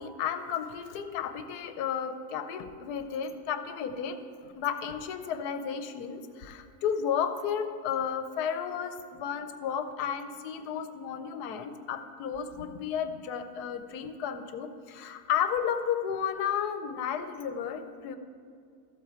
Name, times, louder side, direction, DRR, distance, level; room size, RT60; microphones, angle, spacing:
voice 1, 0.0-4.2 4.4-18.2, left 8 dB, 80° left, 9 dB, 1.2 m, -33 dB
13.5 x 8.0 x 4.3 m, 2.3 s
omnidirectional pair, 1.7 m